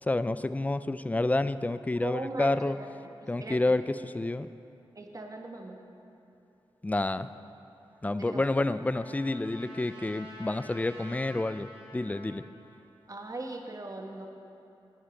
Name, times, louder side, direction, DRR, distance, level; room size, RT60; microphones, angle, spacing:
voice 1, 0.0-2.8 3.3-4.5 6.8-7.3 8.0-12.4, left 2 dB, 15° left, 14 dB, 0.3 m, -29 dB
voice 2, 2.0-2.5 3.4-3.6 4.9-5.8 8.2-8.5 13.1-14.3, right 2 dB, 40° right, 3 dB, 1.1 m, -38 dB
Trumpet, 7.9-12.5, equal, 80° right, 2.4 m, -49 dB
10.5 x 8.8 x 5.2 m, 2.8 s
cardioid pair, 65°, 9 cm